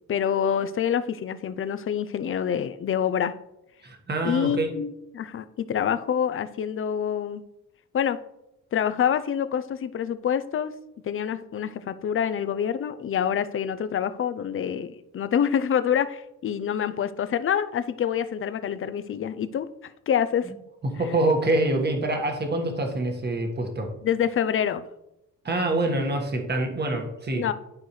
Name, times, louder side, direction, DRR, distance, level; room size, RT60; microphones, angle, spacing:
voice 1, 0.1-3.3 4.2-7.4 7.9-8.2 8.7-10.7 11.0-19.7 20.1-20.5 24.0-24.9 27.3-27.5, left 8 dB, 45° left, 12 dB, 0.6 m, -26 dB
voice 2, 3.8-4.7 20.9-23.9 25.4-27.5, right 2 dB, 35° right, 3 dB, 1.6 m, -26 dB
11.5 x 4.6 x 3.2 m, 0.87 s
cardioid pair, 90°, 30 cm